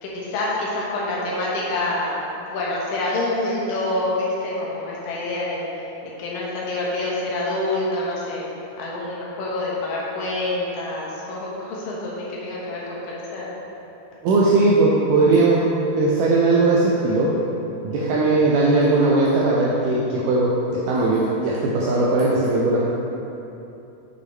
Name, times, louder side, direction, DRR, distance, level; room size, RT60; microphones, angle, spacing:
voice 1, 0.0-2.2 2.5-5.6 6.2-8.4 8.8-13.5, left 2 dB, 65° left, -5 dB, 2.7 m, -27 dB
voice 2, 14.2-15.7 16.0-17.4 17.8-22.8, right 2 dB, 85° right, -5 dB, 1.8 m, -19 dB
6.9 x 6.8 x 3.2 m, 2.9 s
omnidirectional pair, 4.5 m